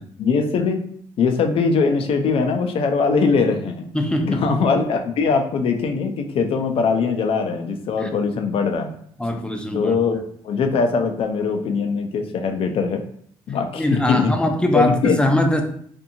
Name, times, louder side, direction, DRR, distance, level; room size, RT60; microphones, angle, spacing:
voice 1, 0.2-0.8 1.2-3.8 4.2-8.9 9.7-10.2 10.4-13.0 13.5-14.3 14.7-15.2, left 5 dB, 65° left, 5 dB, 0.5 m, -21 dB
voice 2, 3.9-4.4 8.0-8.1 9.2-10.0 13.7-15.6, left 1 dB, 10° left, 4 dB, 0.5 m, -21 dB
2.7 x 2.6 x 2.6 m, 0.63 s
cardioid pair, 75°, 10 cm